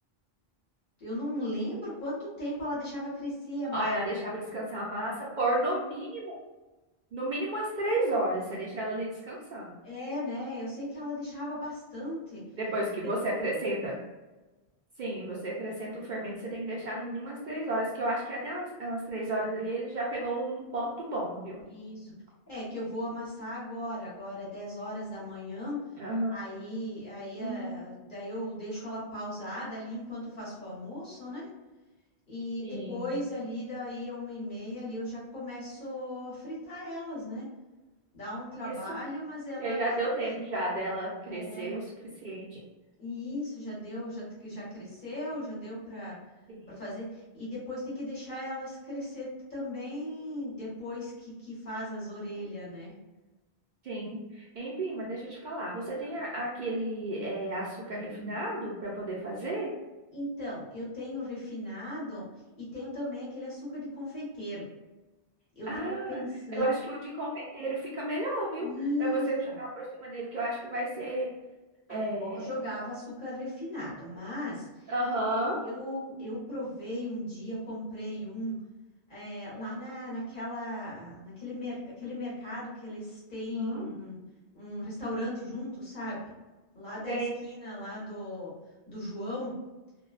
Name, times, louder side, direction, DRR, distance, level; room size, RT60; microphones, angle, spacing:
voice 1, 1.0-4.0 9.8-12.4 21.7-22.1 22.5-25.8 26.3-31.5 32.3-37.5 38.1-40.4 41.3-41.7 43.0-46.2 46.8-52.9 55.9-56.1 60.1-62.3 62.6-64.6 65.6-66.7 68.6-69.6 71.9-74.7 75.1-75.3 75.6-78.5 79.1-84.2 84.5-86.3 86.7-88.5 88.9-89.5, left 1 dB, 50° left, -8 dB, 1.2 m, -37 dB
voice 2, 3.7-6.4 7.1-9.7 12.6-14.0 15.0-21.6 26.0-26.4 27.4-27.8 32.6-33.1 38.6-39.0 39.6-41.9 42.2-42.6 46.5-46.7 53.8-59.7 65.7-66.2 66.6-68.7 69.0-71.3 71.9-72.5 74.9-75.6 83.5-83.9 87.1-87.3, right 1 dB, 55° right, -4 dB, 0.6 m, -32 dB
2.5 x 2.1 x 2.3 m, 1.1 s
omnidirectional pair, 1.1 m